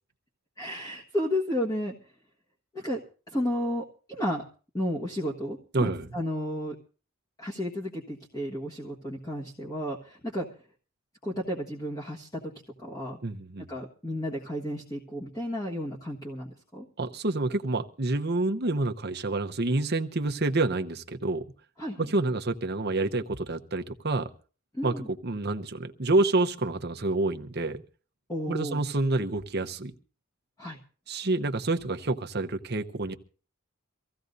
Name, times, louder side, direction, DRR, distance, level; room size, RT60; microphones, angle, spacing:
voice 1, 0.6-1.9 2.7-3.0 3.3-4.4 4.7-6.7 7.4-10.5 11.2-12.5 12.8-13.2 13.7-16.8 21.8-22.1 24.7-25.1 28.3-28.8 30.6-30.8, equal, 15° left, 1.5 m, -32 dB
voice 2, 5.7-6.1 13.2-13.7 17.0-21.4 22.0-24.3 24.8-27.8 28.5-29.9 31.1-33.1, right 2 dB, 45° right, 0.9 m, -28 dB
25.0 x 15.5 x 2.7 m
head